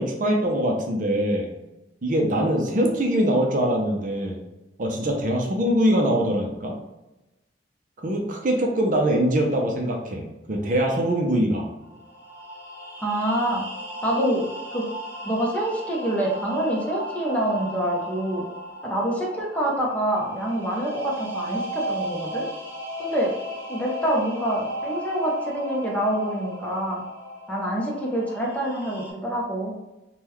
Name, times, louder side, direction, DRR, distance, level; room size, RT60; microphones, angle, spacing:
voice 1, 0.0-1.5 2.0-4.4 4.8-6.8 8.0-11.7, right 1 dB, 45° right, 1 dB, 0.5 m, -23 dB
sound 1, 11.8-29.1, equal, 10° right, 1.3 m, -36 dB
voice 2, 13.0-13.6 14.0-14.5 14.7-14.9 15.2-18.4 18.8-22.4 23.0-23.3 23.7-27.0 27.5-29.7, right 1 dB, 10° left, -4 dB, 0.7 m, -26 dB
3.6 x 2.2 x 3.0 m, 1.0 s
head